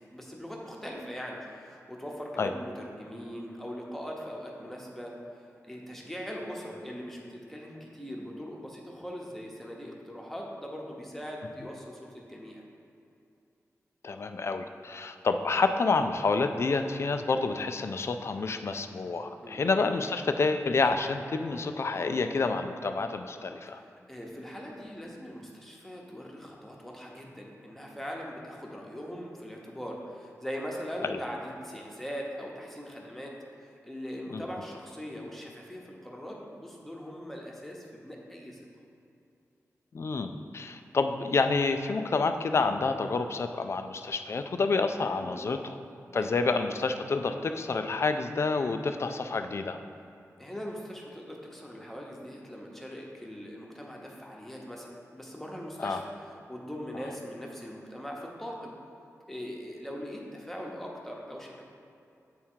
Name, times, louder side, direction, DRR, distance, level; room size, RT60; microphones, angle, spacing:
voice 1, 0.1-12.7 19.4-19.6 23.7-33.3 33.6-38.6 45.2-45.4 46.1-46.3 50.4-58.7 59.3-61.6, equal, 5° left, -2 dB, 0.9 m, -41 dB
voice 2, 14.0-23.8 31.0-31.2 34.3-34.4 39.9-45.8 46.1-49.8 55.8-56.0, left 4 dB, 50° left, 7 dB, 0.4 m, -28 dB
8.3 x 3.6 x 4.5 m, 2.6 s
wide cardioid pair, 110°, 6 cm